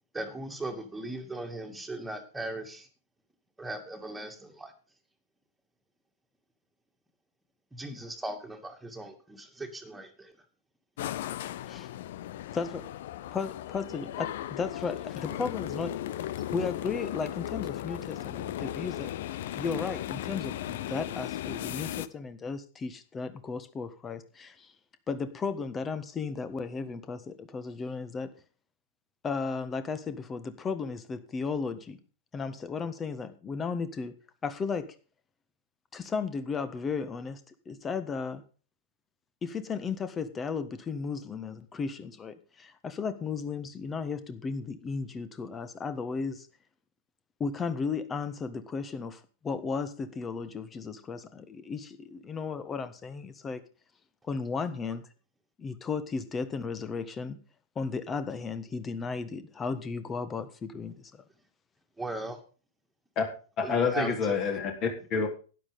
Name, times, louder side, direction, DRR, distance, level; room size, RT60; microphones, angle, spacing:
voice 1, 0.1-2.9 3.6-4.7 7.7-10.3 62.0-62.4 63.6-64.4, right 2 dB, 5° right, 4 dB, 2.5 m, -38 dB
sound 1, 11.0-22.1, left 12 dB, 55° left, 0.7 m, -36 dB
voice 2, 12.5-12.9 13.3-16.0 16.5-19.1 19.5-24.7 25.1-28.3 29.2-32.0 32.3-34.1 34.4-34.9 35.9-38.4 39.4-46.5 47.4-53.6 54.3-55.0 55.6-57.4 57.7-61.2, left 5 dB, 20° left, 12 dB, 1.4 m, -35 dB
voice 3, 63.6-65.3, left 5 dB, 35° left, 4 dB, 3.7 m, -28 dB
12.0 x 10.0 x 5.3 m, 0.37 s
figure-of-eight pair, 100°, 0 cm